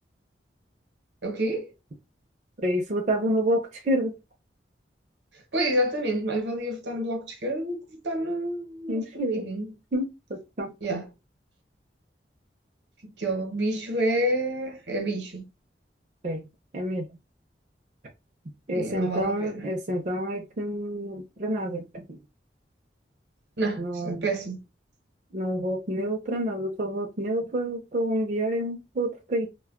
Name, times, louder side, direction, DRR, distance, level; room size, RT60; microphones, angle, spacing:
voice 1, 1.2-1.7 5.5-9.7 10.8-11.1 13.2-15.5 18.7-19.7 23.6-24.6, right 1 dB, 80° right, 0.9 m, -29 dB
voice 2, 2.6-4.1 8.9-9.4 9.9-10.7 16.2-16.4 16.7-17.1 18.7-22.2 23.8-24.3 25.3-29.5, equal, 45° right, 0.5 m, -28 dB
2.2 x 2.1 x 3.5 m
head